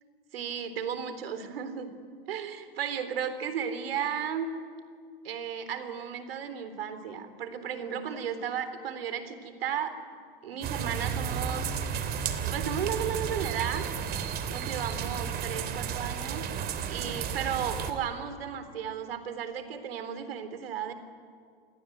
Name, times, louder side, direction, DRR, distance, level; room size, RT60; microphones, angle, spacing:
voice 1, 0.3-1.9 2.3-4.5 5.2-11.7 12.5-13.9 14.5-16.4 16.9-20.9, right 8 dB, 70° right, 11 dB, 3.9 m, -34 dB
sound 1, 10.6-17.9, right 7 dB, 30° right, 3.1 m, -33 dB
28.5 x 20.5 x 9.5 m, 2.2 s
hypercardioid pair, 110°, 30 cm